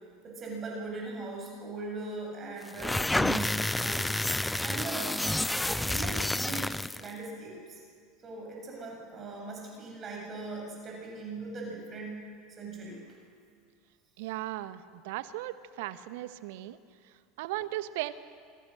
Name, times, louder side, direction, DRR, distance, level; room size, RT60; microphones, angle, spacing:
voice 1, 0.2-5.1 5.7-7.8 8.2-12.2 12.5-13.2, right 3 dB, 35° right, -1 dB, 7.5 m, -40 dB
sound 1, 2.7-7.1, left 1 dB, 5° left, 0.5 m, -29 dB
voice 2, 14.2-16.8 17.0-18.1, right 15 dB, 65° right, 13 dB, 1.1 m, -37 dB
27.0 x 23.0 x 6.6 m, 2.2 s
figure-of-eight pair, 75°, 0 cm